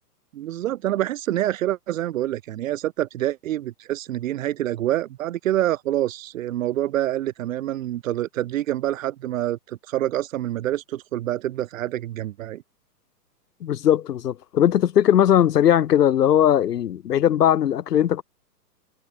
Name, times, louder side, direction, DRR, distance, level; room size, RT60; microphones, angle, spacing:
voice 1, 0.3-12.6, right 13 dB, 55° right, 2.0 m, -26 dB
voice 2, 13.6-18.2, left 10 dB, 75° left, 1.4 m, -19 dB
hypercardioid pair, 145°, 48 cm